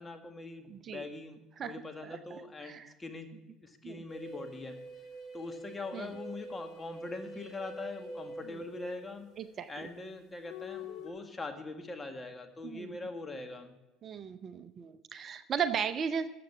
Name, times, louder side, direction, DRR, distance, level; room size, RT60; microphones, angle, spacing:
voice 1, 0.0-4.8 5.3-9.3 9.7-13.8, left 3 dB, 20° left, 5 dB, 1.9 m, -42 dB
voice 2, 0.7-1.0 1.6-1.8 2.0-2.9 3.8-4.0 5.9-6.1 8.5-8.6 9.4-9.9 12.6-12.9 14.0-16.3, right 7 dB, 40° right, 12 dB, 0.7 m, -36 dB
sound 1, 4.1-9.6 10.4-11.1, equal, 65° left, 3.2 m, -45 dB
14.0 x 7.8 x 5.9 m, 1.1 s
hypercardioid pair, 60°, 0 cm